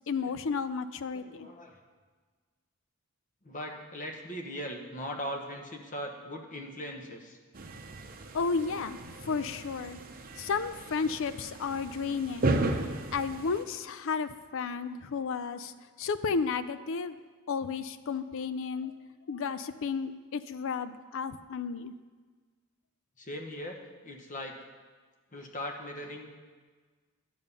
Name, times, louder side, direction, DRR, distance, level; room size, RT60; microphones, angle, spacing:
voice 1, 0.1-1.5 8.3-10.0 10.4-12.6 13.1-17.2 17.5-18.9 19.3-21.9, left 5 dB, 60° left, 13 dB, 0.5 m, -33 dB
voice 2, 1.1-1.8 3.4-7.4 23.2-24.6 25.3-26.3, equal, 35° left, 3 dB, 1.2 m, -39 dB
sound 1, 7.5-13.6, right 2 dB, 40° right, 0.7 m, -35 dB
10.5 x 7.3 x 5.5 m, 1.4 s
head